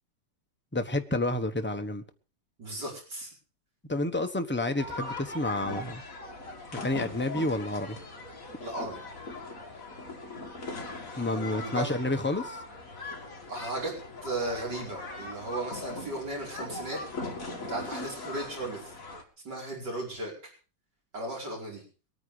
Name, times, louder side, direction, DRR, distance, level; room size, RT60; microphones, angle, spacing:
voice 1, 0.7-2.0 3.9-6.0 6.7-8.0 11.1-12.6, left 2 dB, 10° left, 6 dB, 0.9 m, -29 dB
voice 2, 2.6-3.3 8.6-9.0 11.3-11.9 13.5-14.0 14.2-17.0 17.6-18.9 19.4-20.5 21.1-21.8, right 2 dB, 65° right, -2 dB, 5.7 m, -36 dB
sound 1, 4.8-19.2, left 2 dB, 45° left, 2.9 m, -40 dB
22.5 x 9.5 x 5.0 m, 0.37 s
omnidirectional pair, 2.0 m